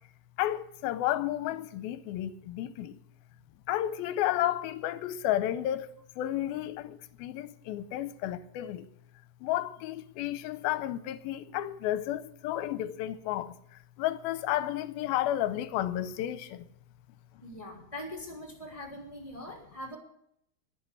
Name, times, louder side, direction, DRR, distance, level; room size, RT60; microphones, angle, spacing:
voice 1, 0.4-3.0 3.7-5.9 6.2-8.9 9.4-13.5 14.0-16.6, left 13 dB, 80° left, 2.5 m, -32 dB
voice 2, 17.4-20.0, left 1 dB, 10° left, 2.9 m, -42 dB
10.5 x 10.5 x 10.0 m
omnidirectional pair, 4.3 m